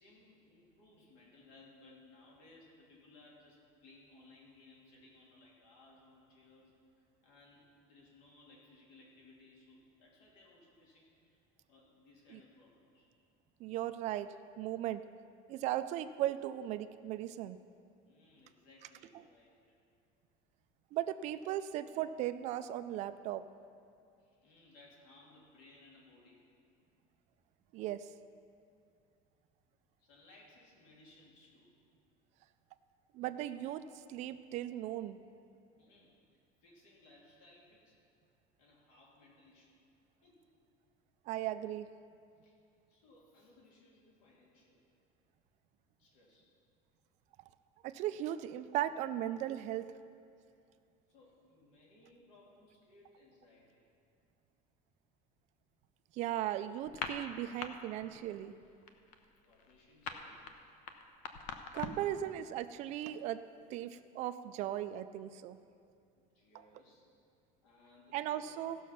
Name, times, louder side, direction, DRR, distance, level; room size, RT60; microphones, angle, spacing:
voice 1, 0.0-11.4 11.7-13.1 18.0-19.8 24.2-26.5 30.0-31.8 35.8-38.0 38.6-39.8 40.2-40.5 42.4-42.5 42.9-44.8 46.0-46.5 51.1-53.9 59.2-60.5 66.1-67.1 67.6-68.6, left 2 dB, 75° left, -3 dB, 3.0 m, -62 dB
voice 2, 13.6-14.3 14.6-15.0 15.5-17.6 20.9-23.4 27.7-28.1 33.1-33.8 34.1-35.2 41.3-41.9 47.8-49.9 56.1-58.5 61.7-63.4 63.7-65.6 68.1-68.8, right 12 dB, 40° right, 11 dB, 0.4 m, -37 dB
sound 1, 56.8-57.7 58.0-58.3 58.6-62.1, left 6 dB, 50° left, 0.8 m, -42 dB
16.0 x 6.3 x 5.8 m, 2.4 s
cardioid pair, 175°, 17 cm